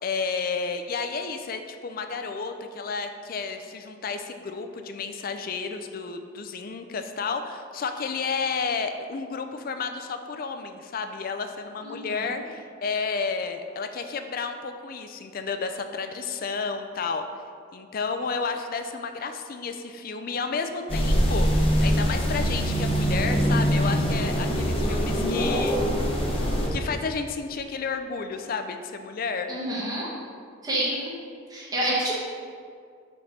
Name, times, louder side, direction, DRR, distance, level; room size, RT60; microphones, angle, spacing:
voice 1, 0.0-17.2 17.7-25.8 26.7-29.5, left 5 dB, 50° left, 7 dB, 0.4 m, -31 dB
voice 2, 11.8-12.4 29.5-30.1 30.6-31.1 31.5-32.3, right 1 dB, 20° right, -6 dB, 1.3 m, -28 dB
sound 1, 20.9-26.7, equal, 30° left, 0.9 m, -23 dB
5.1 x 4.2 x 5.8 m, 2.1 s
head